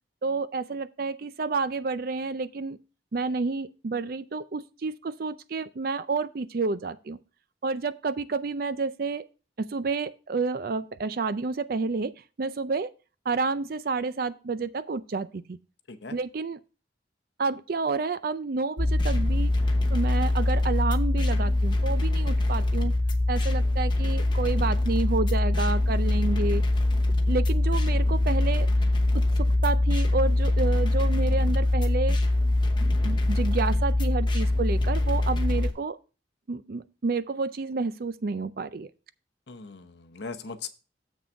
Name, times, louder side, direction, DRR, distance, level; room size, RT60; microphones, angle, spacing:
voice 1, 0.2-2.8 3.1-7.2 7.6-9.2 9.6-12.9 13.3-15.6 16.1-16.6 17.4-19.5 19.9-22.9 23.3-26.6 27.3-28.7 29.1-32.2 32.8-36.0 36.5-38.9, right 4 dB, 50° right, 0.5 m, -30 dB
sound 1, 18.8-35.7, left 2 dB, 25° left, 0.9 m, -23 dB
voice 2, 39.5-40.7, left 4 dB, 65° left, 0.8 m, -39 dB
7.3 x 6.3 x 4.5 m
head